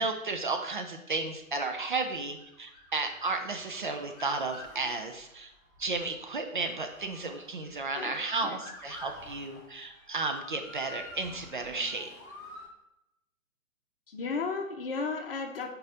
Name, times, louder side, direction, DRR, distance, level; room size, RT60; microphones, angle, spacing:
voice 1, 0.0-5.5 5.8-12.1, right 3 dB, 35° right, 5 dB, 0.6 m, -33 dB
Motor vehicle (road) / Siren, 1.7-12.7, left 2 dB, 15° left, 0.8 m, -50 dB
voice 2, 8.0-8.6 14.1-15.7, left 4 dB, 40° left, 5 dB, 1.0 m, -34 dB
6.2 x 4.8 x 4.7 m, 0.87 s
figure-of-eight pair, 130°, 42 cm